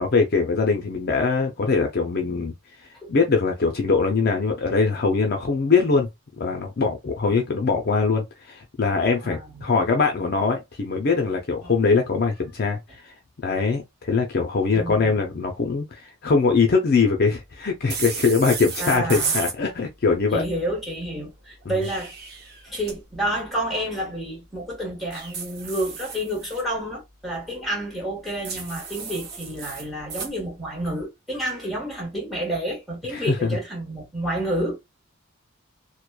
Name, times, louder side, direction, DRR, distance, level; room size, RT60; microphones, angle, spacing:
voice 1, 0.0-2.5 3.1-6.1 6.4-12.8 13.0-13.1 13.4-20.4 21.7-21.8 33.1-33.5, left 4 dB, 45° left, 0.5 m, -22 dB
voice 2, 9.2-9.6 11.6-11.7 14.7-15.2 18.8-19.3 20.3-22.1 22.6-34.8, right 1 dB, ahead, 1.3 m, -29 dB
sound 1, 17.9-19.6 21.6-23.0 25.1-26.6 28.4-30.3, right 5 dB, 45° right, 0.7 m, -32 dB
3.0 x 2.1 x 2.2 m
head